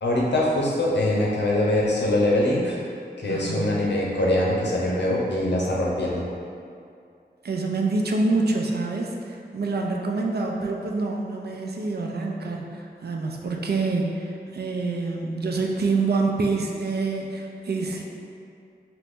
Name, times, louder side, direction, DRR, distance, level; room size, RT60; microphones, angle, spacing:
voice 1, 0.0-2.8 3.2-6.2, left 1 dB, 75° left, -4 dB, 0.6 m, -23 dB
voice 2, 3.3-3.9 7.4-18.0, right 3 dB, 65° right, 0 dB, 0.4 m, -26 dB
2.9 x 2.5 x 3.5 m, 2.4 s
wide cardioid pair, 50°, 18 cm